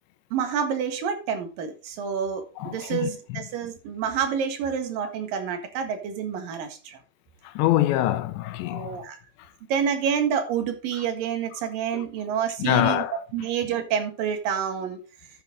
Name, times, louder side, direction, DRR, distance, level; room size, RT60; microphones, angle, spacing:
voice 1, 0.3-7.0 8.7-9.2 9.7-13.0 13.3-15.0, right 7 dB, 60° right, 2.9 m, -28 dB
voice 2, 2.6-3.1 7.4-9.0 11.9-12.1 12.6-13.2, left 14 dB, 85° left, 3.0 m, -24 dB
12.5 x 6.7 x 3.8 m
omnidirectional pair, 5.2 m